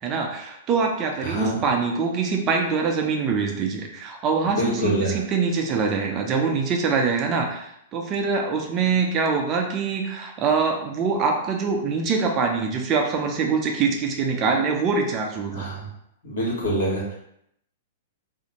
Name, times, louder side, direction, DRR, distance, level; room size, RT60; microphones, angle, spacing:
voice 1, 0.0-15.6, right 5 dB, 35° right, 2 dB, 0.5 m, -24 dB
voice 2, 1.2-1.6 4.4-5.2 15.5-15.9 16.2-17.1, right 1 dB, 70° left, -4 dB, 1.2 m, -25 dB
2.6 x 2.0 x 2.9 m, 0.74 s
hypercardioid pair, 110°, 0 cm